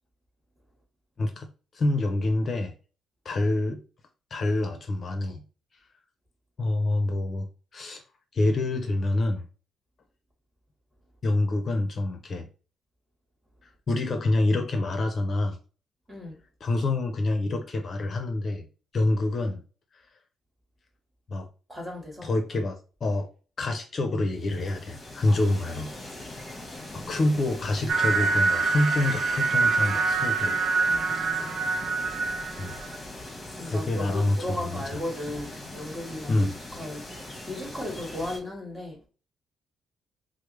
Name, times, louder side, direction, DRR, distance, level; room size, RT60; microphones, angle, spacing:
voice 1, 1.2-1.5 1.7-2.7 3.2-3.8 4.3-5.4 6.6-8.0 8.3-9.5 11.2-12.5 13.9-15.6 16.6-18.7 18.9-19.6 21.3-21.5 22.2-23.3 23.6-25.9 26.9-30.5 30.9-31.1 32.6-32.8 33.7-35.0 36.3-36.5, left 2 dB, 45° left, 0.6 m, -27 dB
voice 2, 16.1-16.4 21.7-22.3 25.3-25.4 27.0-27.2 30.8-31.7 33.5-37.0 37.5-39.0, left 1 dB, 15° right, 1.7 m, -36 dB
sound 1, 24.3-38.4, left 1 dB, 25° left, 1.4 m, -41 dB
sound 2, 27.9-33.0, right 4 dB, 65° right, 0.7 m, -25 dB
4.7 x 2.0 x 3.2 m
cardioid pair, 90°, 0 cm